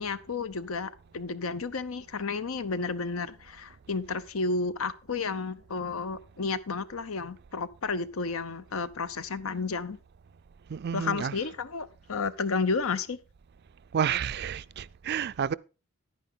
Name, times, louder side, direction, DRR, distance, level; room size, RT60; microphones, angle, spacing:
voice 1, 0.0-10.0 10.9-13.2, left 4 dB, 80° left, 0.8 m, -32 dB
voice 2, 10.7-11.5 13.9-15.5, right 8 dB, 50° right, 0.4 m, -30 dB
10.5 x 9.6 x 3.8 m
head